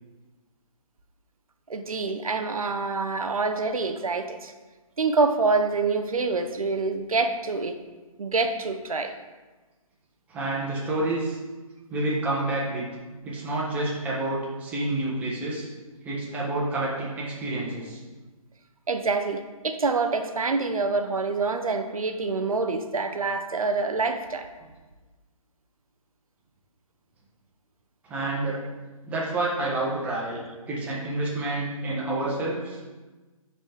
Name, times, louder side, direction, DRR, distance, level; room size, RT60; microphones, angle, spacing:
voice 1, 1.7-4.5 5.0-7.8 8.2-9.1 18.9-24.5, right 4 dB, 70° right, 7 dB, 0.8 m, -26 dB
voice 2, 10.3-11.4 11.9-12.8 13.2-15.7 16.0-18.0 28.1-28.6 29.1-30.4 30.7-32.8, right 2 dB, 10° right, -6 dB, 1.2 m, -28 dB
11.5 x 4.2 x 3.5 m, 1.2 s
figure-of-eight pair, 145°, 19 cm